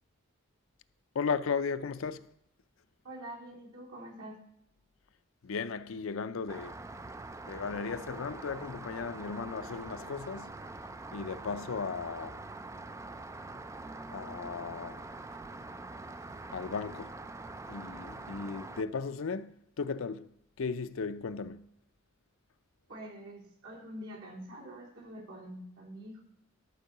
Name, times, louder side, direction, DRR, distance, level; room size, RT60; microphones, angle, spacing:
voice 1, 1.1-2.2 5.4-6.7 7.4-10.5 11.1-12.4 14.1-15.0 16.5-17.1 17.7-20.3 20.6-21.6, left 5 dB, 70° left, 0.5 m, -36 dB
voice 2, 3.0-4.4 22.9-26.2, right 1 dB, 90° right, 3.2 m, -45 dB
Rain, 6.5-18.8, right 2 dB, 15° right, 0.3 m, -44 dB
12.0 x 4.6 x 6.6 m
head